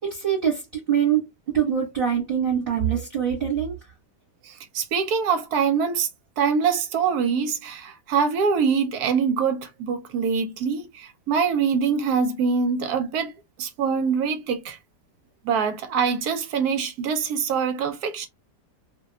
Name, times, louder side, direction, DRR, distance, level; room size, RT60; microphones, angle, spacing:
voice 1, 0.0-3.8, right 8 dB, 40° right, 1.1 m, -24 dB
voice 2, 4.4-6.1 6.4-13.3 13.6-14.8 15.4-18.3, right 6 dB, 70° right, 1.0 m, -24 dB
2.7 x 2.2 x 3.2 m
omnidirectional pair, 1.9 m